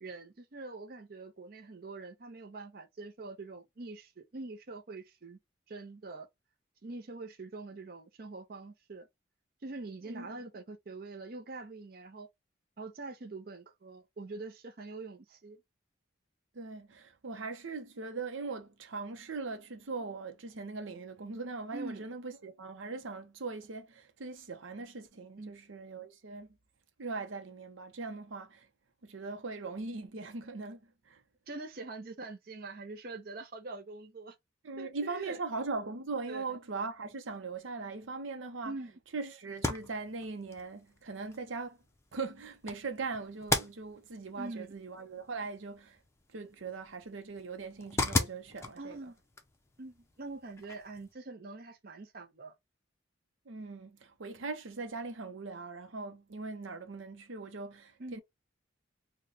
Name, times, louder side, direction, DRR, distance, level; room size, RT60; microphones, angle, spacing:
voice 1, 0.0-5.4 5.7-6.3 6.8-9.1 9.6-12.3 12.8-15.6 21.7-22.0 25.4-25.5 31.5-34.4 34.8-35.4 36.3-36.4 38.6-38.9 44.4-44.7 48.8-49.2 49.8-52.5 58.0-58.2, right 3 dB, 50° right, 0.6 m, -44 dB
voice 2, 10.1-10.4 16.5-26.5 27.0-28.7 29.0-31.2 34.6-38.7 39.1-41.8 42.1-46.0 46.3-49.0 53.5-58.2, right 3 dB, 85° right, 0.7 m, -40 dB
sound 1, 39.5-51.1, left 2 dB, 15° left, 0.5 m, -39 dB
3.1 x 2.2 x 4.0 m
head